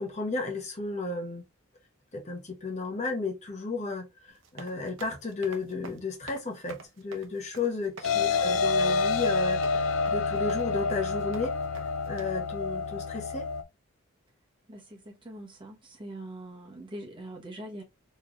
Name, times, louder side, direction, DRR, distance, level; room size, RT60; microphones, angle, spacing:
voice 1, 0.0-1.4 2.1-11.6 12.1-13.5, left 3 dB, 30° left, 0.9 m, -33 dB
sound 1, 4.3-12.3, right 3 dB, 65° right, 0.8 m, -48 dB
sound 2, 8.0-13.6, left 4 dB, 70° left, 0.5 m, -28 dB
voice 2, 8.1-8.6 14.7-17.8, right 1 dB, 25° right, 1.2 m, -43 dB
4.5 x 3.2 x 2.5 m
head